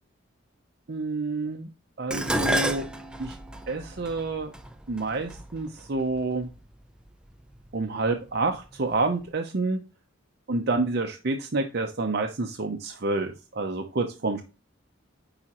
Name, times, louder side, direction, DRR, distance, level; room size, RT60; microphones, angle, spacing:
voice 1, 0.9-1.7 2.0-2.8 3.2-3.4 3.7-4.5 4.9-6.5 7.7-9.8 10.5-14.4, right 3 dB, 55° right, 3 dB, 0.7 m, -28 dB
Dishes pots and pans, 2.1-6.5 7.4-7.8 8.1-9.0 9.2-9.3, right 1 dB, 5° right, 0.5 m, -31 dB
8.8 x 4.9 x 3.0 m, 0.31 s
head